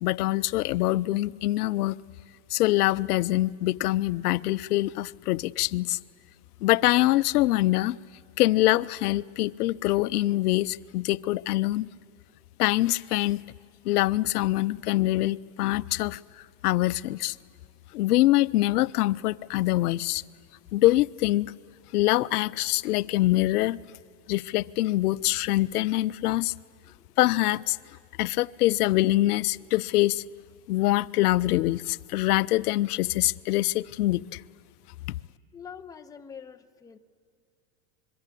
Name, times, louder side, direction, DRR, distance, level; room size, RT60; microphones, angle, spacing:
voice 1, 0.0-1.9 2.5-6.0 6.6-8.0 8.4-11.9 12.6-13.4 13.8-16.2 16.6-17.3 17.9-20.2 20.7-21.5 21.9-23.8 24.3-26.5 27.2-27.8 28.2-30.2 30.7-34.4 35.1-35.2, left 17 dB, 70° left, 17 dB, 0.7 m, -24 dB
voice 2, 26.8-27.2 35.5-37.0, left 7 dB, 10° left, 6 dB, 0.5 m, -45 dB
26.0 x 23.0 x 8.4 m, 2.2 s
supercardioid pair, 140°, 48 cm